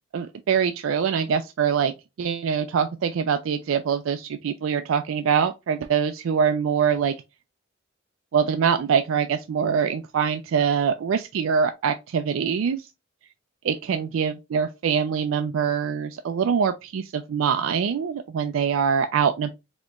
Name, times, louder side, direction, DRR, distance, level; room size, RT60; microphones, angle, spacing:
voice 1, 0.1-1.9 2.2-7.1 8.3-12.8 13.7-19.5, right 7 dB, 85° right, 0.4 m, -24 dB
4.2 x 2.9 x 2.3 m
head